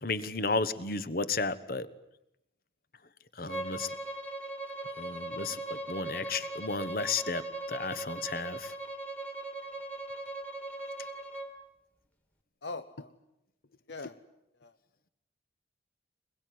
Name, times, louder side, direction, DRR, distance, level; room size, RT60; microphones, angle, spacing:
voice 1, 0.0-1.9 3.4-3.9 5.0-7.4 7.7-8.7, left 4 dB, 50° left, 13 dB, 1.3 m, -33 dB
Bowed string instrument, 3.5-11.5, right 2 dB, 10° left, 2.3 m, -39 dB
voice 2, 12.6-13.1 13.9-14.2 14.6-14.7, left 3 dB, 70° left, 10 dB, 0.9 m, -40 dB
24.0 x 21.5 x 9.4 m, 0.83 s
head